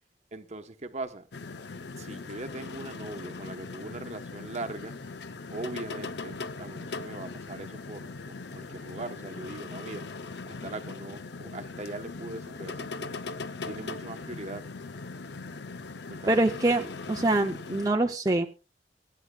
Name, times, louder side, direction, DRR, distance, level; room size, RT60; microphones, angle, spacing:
voice 1, 0.3-1.3 2.0-5.0 5.5-10.1 10.5-13.2 13.6-14.6 16.1-16.4, right 2 dB, 40° right, 1.0 m, -40 dB
sound 1, 1.3-17.9, left 3 dB, 70° left, 0.7 m, -40 dB
voice 2, 16.3-18.5, right 2 dB, 20° right, 0.6 m, -25 dB
24.0 x 9.6 x 2.3 m
head